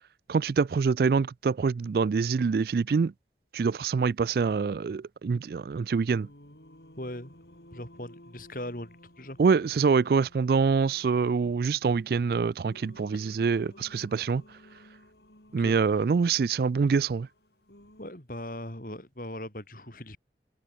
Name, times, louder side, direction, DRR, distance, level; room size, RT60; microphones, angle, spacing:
voice 1, 0.3-3.1 3.5-6.3 9.4-14.4 15.5-17.3, right 5 dB, 55° right, 0.3 m, -25 dB
Singing, 6.0-18.1, left 1 dB, 70° left, 8.0 m, -55 dB
voice 2, 7.0-7.4 7.7-9.4 13.1-13.4 15.6-15.8 18.0-20.2, left 1 dB, 50° left, 7.7 m, -39 dB
head